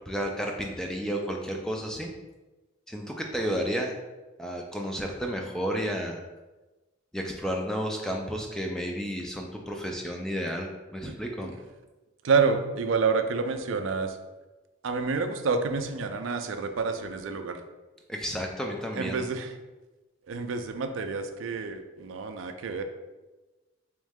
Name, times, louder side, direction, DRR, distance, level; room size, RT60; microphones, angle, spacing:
voice 1, 0.1-2.1 2.9-3.9 4.4-6.2 7.1-11.5 18.1-19.2, equal, 5° left, 1 dB, 0.3 m, -32 dB
voice 2, 12.2-14.2 14.8-17.6 18.9-19.5 20.3-22.8, right 4 dB, 75° right, 7 dB, 0.4 m, -28 dB
3.6 x 3.1 x 3.5 m, 1.2 s
head